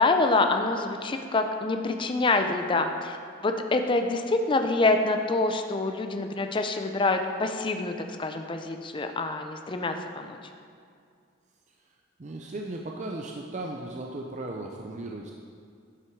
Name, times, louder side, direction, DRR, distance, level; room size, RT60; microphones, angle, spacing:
voice 1, 0.0-3.2 3.4-7.9 8.2-10.4, left 3 dB, 25° left, 6 dB, 0.5 m, -26 dB
voice 2, 12.2-15.3, right 2 dB, 35° right, 0 dB, 0.5 m, -36 dB
11.0 x 6.1 x 4.6 m, 2.3 s
head